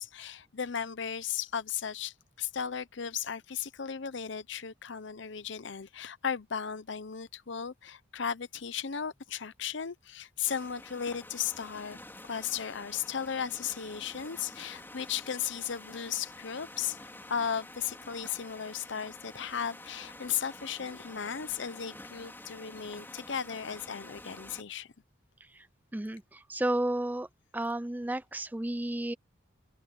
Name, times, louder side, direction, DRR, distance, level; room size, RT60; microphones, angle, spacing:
voice 1, 0.0-12.0 12.2-24.9, left 8 dB, 60° left, 0.7 m, -36 dB
sound 1, 10.5-24.6, left 2 dB, 10° left, 3.7 m, -49 dB
voice 2, 25.9-27.3 27.5-29.1, right 1 dB, 10° right, 0.4 m, -32 dB
open air
head